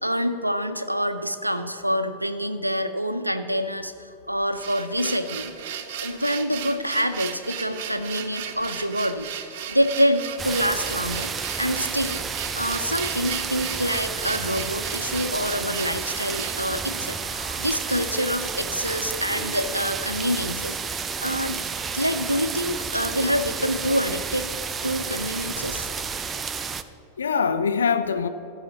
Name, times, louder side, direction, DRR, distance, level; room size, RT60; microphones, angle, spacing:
voice 1, 0.0-5.7 6.0-11.3 11.6-12.2 12.5-21.6 21.9-24.4 24.8-25.9, equal, 90° right, 10 dB, 0.5 m, -26 dB
sound 1, 4.3-16.7, right 9 dB, 50° right, 0.9 m, -35 dB
sound 2, 10.4-26.8, right 5 dB, 20° right, 0.5 m, -31 dB
voice 2, 17.1-17.7 27.2-28.3, left 6 dB, 70° left, 11 dB, 0.5 m, -25 dB
14.0 x 5.6 x 7.1 m, 2.8 s
figure-of-eight pair, 90°, 0 cm